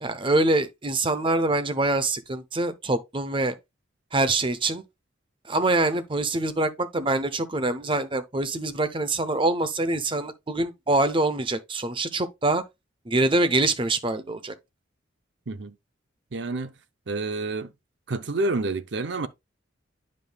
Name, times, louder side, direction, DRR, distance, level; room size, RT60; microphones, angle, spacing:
voice 1, 0.0-3.5 4.1-4.8 5.5-12.6 13.1-14.5, right 2 dB, 25° right, 0.7 m, -25 dB
voice 2, 16.3-16.7 17.1-17.7 18.1-19.3, right 2 dB, 65° right, 0.6 m, -28 dB
9.7 x 5.3 x 2.3 m
head